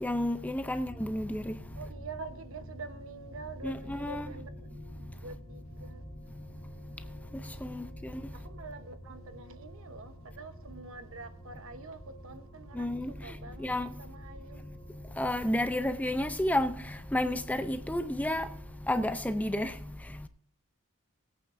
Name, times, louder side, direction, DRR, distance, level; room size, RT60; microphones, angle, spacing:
voice 1, 0.0-1.5 3.6-4.3 7.6-7.8 12.8-13.1 13.6-13.9 15.2-16.7 17.1-18.5 18.9-19.7, left 1 dB, 5° left, 0.5 m, -30 dB
sound 1, 0.8-19.1, equal, 55° left, 3.2 m, -50 dB
voice 2, 1.7-4.7 5.2-6.0 7.8-7.9 8.3-13.7 14.0-14.6, right 3 dB, 65° right, 1.0 m, -46 dB
20.5 x 8.7 x 2.6 m
head